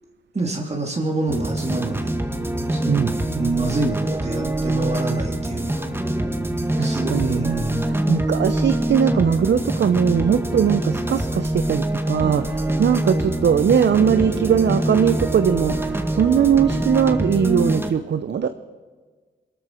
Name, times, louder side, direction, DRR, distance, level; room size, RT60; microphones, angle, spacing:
voice 1, 0.3-2.1 2.7-5.9 6.8-7.9 12.2-12.8, right 2 dB, 30° right, 1 dB, 2.4 m, -27 dB
sound 1, 1.3-17.9, right 1 dB, 10° right, 1.8 m, -24 dB
voice 2, 2.9-3.2 6.7-18.5, right 8 dB, 60° right, 10 dB, 0.7 m, -20 dB
21.5 x 13.5 x 4.5 m, 1.4 s
supercardioid pair, 50°, 20 cm